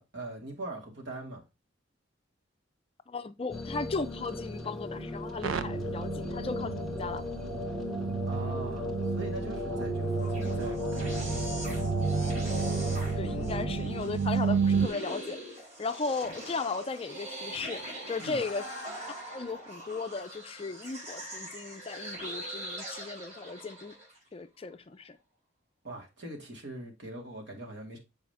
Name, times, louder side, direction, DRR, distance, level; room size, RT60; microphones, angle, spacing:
voice 1, 0.0-1.4 8.3-11.8 12.9-13.5 18.2-18.4 25.8-28.0, right 2 dB, 60° right, 2.2 m, -42 dB
voice 2, 3.1-7.2 13.2-15.4 15.8-17.8 18.1-18.7 19.1-23.9 24.3-25.2, left 4 dB, 30° left, 0.4 m, -36 dB
sound 1, 3.5-13.8, left 2 dB, ahead, 1.2 m, -36 dB
sound 2, 5.4-14.9, right 5 dB, 85° right, 0.5 m, -32 dB
sound 3, 10.0-24.2, right 1 dB, 35° right, 3.5 m, -42 dB
7.4 x 4.8 x 3.5 m
head